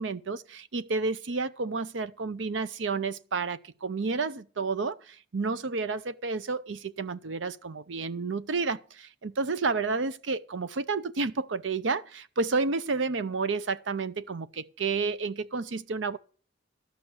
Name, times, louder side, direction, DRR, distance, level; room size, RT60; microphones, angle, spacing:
voice 1, 0.0-16.2, right 4 dB, 90° right, 0.7 m, -31 dB
12.5 x 5.8 x 8.7 m
head